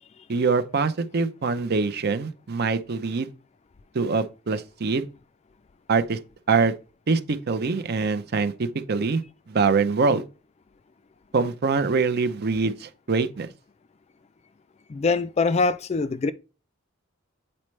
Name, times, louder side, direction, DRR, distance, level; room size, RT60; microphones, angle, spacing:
voice 1, 0.3-3.3 3.9-5.0 5.9-6.2 6.5-6.7 7.1-9.2 9.5-10.2 11.3-13.5, right 4 dB, 50° right, 0.6 m, -24 dB
voice 2, 14.9-16.3, left 4 dB, 30° left, 0.3 m, -23 dB
8.7 x 4.3 x 3.2 m
head